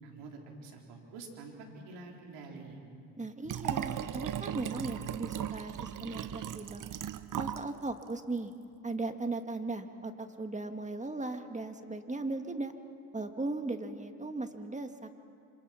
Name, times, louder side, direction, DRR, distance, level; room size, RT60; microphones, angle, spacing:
voice 1, 0.0-2.8, right 3 dB, 75° right, 0 dB, 4.3 m, -47 dB
voice 2, 3.2-6.9 7.3-8.5 8.8-12.7 13.1-15.1, right 2 dB, 15° right, 6 dB, 2.1 m, -37 dB
Liquid, 3.5-7.7 8.0-8.1, right 10 dB, 50° right, 1.1 m, -37 dB
26.5 x 26.5 x 5.9 m, 2.4 s
hypercardioid pair, 60°, 40 cm